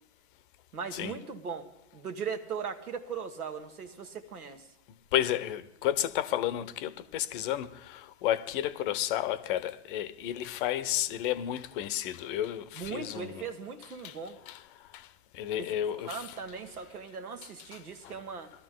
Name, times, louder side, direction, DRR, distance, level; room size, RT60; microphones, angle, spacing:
voice 1, 0.7-1.7 1.9-4.7 12.7-14.4 15.6-18.5, right 6 dB, 90° right, 1.8 m, -39 dB
voice 2, 5.1-13.4 14.0-14.1 14.5-14.6 14.9-15.0 15.3-16.2 18.0-18.1, left 12 dB, 35° left, 0.7 m, -32 dB
21.0 x 13.5 x 3.7 m
hypercardioid pair, 125°, 43 cm